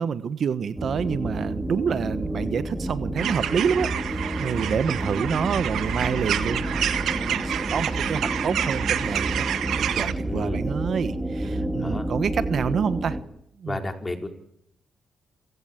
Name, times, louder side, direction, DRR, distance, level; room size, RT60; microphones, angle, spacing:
voice 1, 0.0-6.9 7.1-9.5 9.8-13.2 13.6-13.8, right 7 dB, 55° right, 13 dB, 1.2 m, -27 dB
sound 1, 0.8-13.2, right 1 dB, 10° right, 3.8 m, -30 dB
sound 2, 3.2-10.1, right 10 dB, 70° right, 1.7 m, -29 dB
voice 2, 10.2-10.6 11.8-12.0 13.7-14.3, left 2 dB, 20° left, 5 dB, 4.8 m, -31 dB
27.5 x 16.5 x 9.2 m, 0.77 s
cardioid pair, 90°, 0 cm